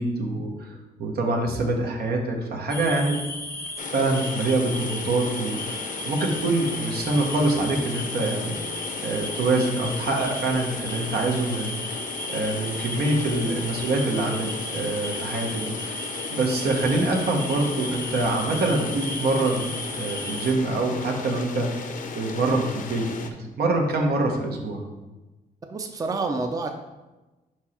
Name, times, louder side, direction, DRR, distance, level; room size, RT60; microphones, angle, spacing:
voice 1, 0.0-3.2 3.9-8.6 9.0-11.7 12.3-19.7 20.0-21.9 22.1-24.8, right 2 dB, 75° right, 1 dB, 1.1 m, -25 dB
sound 1, 2.7-20.5, left 2 dB, 15° left, 0.7 m, -35 dB
sound 2, 3.8-23.3, left 5 dB, 55° left, 0.6 m, -36 dB
voice 2, 25.7-26.7, right 3 dB, 20° right, 5 dB, 0.5 m, -28 dB
5.2 x 4.6 x 4.3 m, 1.1 s
cardioid pair, 105°, 16 cm